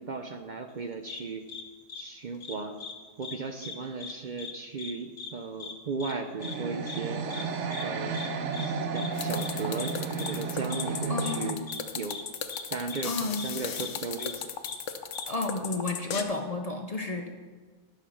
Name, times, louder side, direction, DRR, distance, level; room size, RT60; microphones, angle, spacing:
voice 1, 0.0-1.4 1.9-2.8 3.2-7.2 7.8-8.3 8.6-11.6 11.9-12.2 12.7-14.5, right 4 dB, 50° right, 6 dB, 0.6 m, -36 dB
sound 1, 1.1-1.2 1.5-1.6 1.9-2.0 2.4-2.9 3.2-3.4 3.6-4.1 4.4-4.5 4.8-4.9 5.2-5.3 5.6-5.7 6.0-6.1 6.4-6.6 6.9-7.0 7.3-7.4 7.7-7.8 8.1-8.3 8.5-8.7 9.0-9.1 9.4-9.5 9.8-9.9 10.2-10.3 10.7-10.8 11.2-11.3 11.7-11.8 12.1-12.2 12.5-12.6 12.9-13.0 13.4-13.5 13.8-13.9 14.2-14.3 14.7-14.8 15.1-15.3, left 5 dB, 60° left, 1.2 m, -39 dB
sound 2, 6.4-11.5, right 4 dB, 75° right, 1.1 m, -33 dB
sound 3, 9.2-16.2, left 7 dB, 85° left, 1.1 m, -36 dB
voice 2, 11.1-11.6 13.0-13.5 15.3-17.3, left 3 dB, 40° left, 4 dB, 0.6 m, -32 dB
11.5 x 5.9 x 6.1 m, 1.5 s
omnidirectional pair, 1.2 m